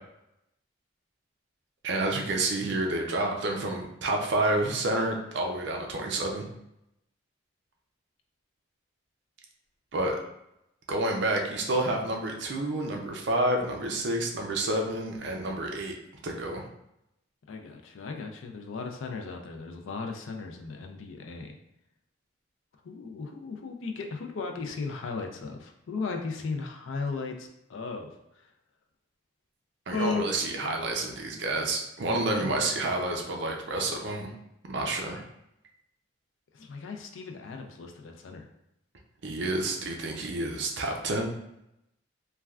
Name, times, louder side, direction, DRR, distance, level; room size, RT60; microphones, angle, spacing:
voice 1, 1.8-6.4 9.9-10.2 10.9-15.9 16.2-16.6 29.9-34.3 34.7-35.2 39.2-41.3, right 2 dB, 60° right, 1 dB, 0.5 m, -29 dB
voice 2, 17.5-21.6 22.8-28.1 29.9-30.3 32.4-32.6 36.5-38.5, left 4 dB, 80° left, 4 dB, 0.4 m, -36 dB
3.2 x 2.3 x 2.3 m, 0.82 s
head